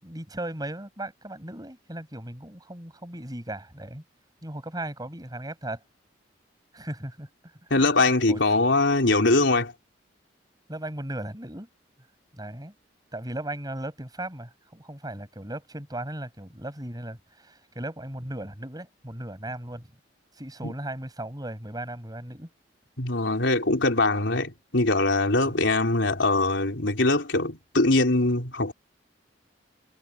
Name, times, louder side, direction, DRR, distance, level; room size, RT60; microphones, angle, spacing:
voice 1, 0.0-4.0 4.4-5.8 6.7-7.3 7.7-7.8 8.3-8.4 10.7-11.7 12.3-12.7 13.1-19.9 20.4-22.5 25.4-25.5, right 1 dB, 20° right, 7.5 m, -37 dB
voice 2, 7.7-9.7 20.6-20.7 23.0-28.7, left 2 dB, 85° left, 3.8 m, -22 dB
head